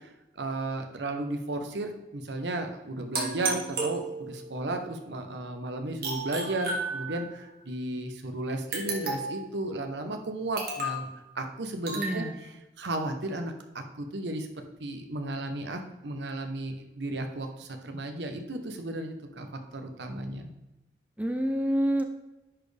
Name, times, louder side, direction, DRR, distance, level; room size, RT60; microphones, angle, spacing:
voice 1, 0.4-11.1 11.3-12.3 12.8-14.5 14.8-19.5 19.7-20.5, right 2 dB, 90° right, 5 dB, 0.8 m, -34 dB
sound 1, 3.1-4.6 6.0-7.5 8.7-9.5 10.6-11.1 11.9-12.2, right 3 dB, 55° right, 1.5 m, -33 dB
voice 2, 12.0-12.4 21.2-22.0, equal, 10° right, 5 dB, 0.4 m, -27 dB
10.0 x 4.3 x 3.3 m, 1.0 s
head